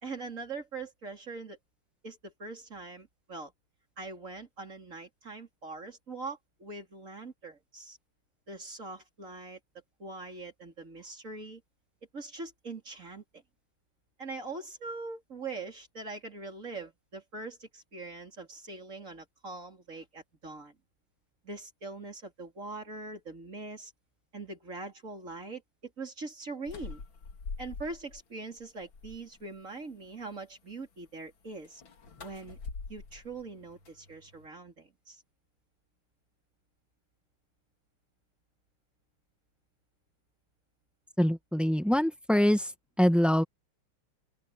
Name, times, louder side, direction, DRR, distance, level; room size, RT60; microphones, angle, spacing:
voice 1, 0.0-1.6 2.0-3.5 4.0-8.0 8.5-9.6 10.0-11.6 12.1-13.4 14.2-20.7 21.4-23.9 24.3-27.0 27.6-31.8 32.2-32.6 32.9-35.2, right 3 dB, 40° right, 4.4 m, -42 dB
sound 1, 26.7-28.2 28.6-29.4 31.6-34.5, left 4 dB, 90° left, 3.2 m, -44 dB
voice 2, 41.2-42.7 43.0-43.4, equal, ahead, 1.4 m, -24 dB
open air
omnidirectional pair, 2.1 m